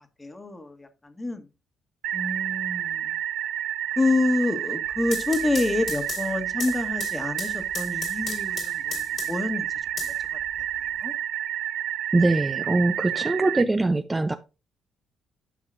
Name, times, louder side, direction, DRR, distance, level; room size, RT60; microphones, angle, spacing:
voice 1, 0.2-1.5 2.1-3.2 4.0-9.7 10.0-10.1 11.0-11.1, left 2 dB, 20° left, 1.5 m, -27 dB
sound 1, 2.0-13.6, right 11 dB, 85° right, 0.5 m, -30 dB
sound 2, 4.9-9.5 10.0-10.9, left 5 dB, 55° left, 2.2 m, -36 dB
voice 2, 12.1-14.3, right 2 dB, 20° right, 0.5 m, -22 dB
11.0 x 5.4 x 2.6 m
cardioid pair, 90°, 0 cm